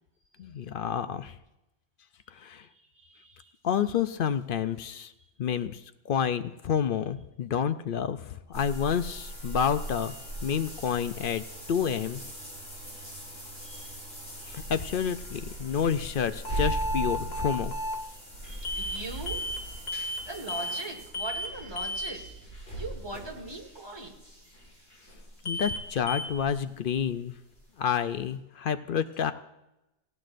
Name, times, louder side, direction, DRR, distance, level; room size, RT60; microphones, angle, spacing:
voice 1, 0.4-1.4 2.3-2.6 3.6-5.1 5.4-5.8 6.1-10.1 10.4-11.4 11.7-12.2 14.5-17.7 25.4-27.3 27.8-29.3, left 8 dB, 60° left, 11 dB, 0.7 m, -29 dB
voice 2, 2.9-3.5 13.6-14.0 18.1-18.2 18.4-19.5 20.3-22.2 22.7-24.2, right 2 dB, 25° right, 1 dB, 1.7 m, -40 dB
sound 1, 8.5-27.2 27.5-27.6 28.1-28.2, right 1 dB, 80° left, 6.5 m, -40 dB
sound 2, 16.4-18.0 18.6-19.0 19.3-19.6 19.9-20.2 20.5-20.8 21.1-21.5 21.8-22.1 25.4-25.8 26.1-26.2, left 1 dB, 45° left, 1.3 m, -33 dB
18.0 x 15.5 x 2.6 m, 0.94 s
omnidirectional pair, 1.1 m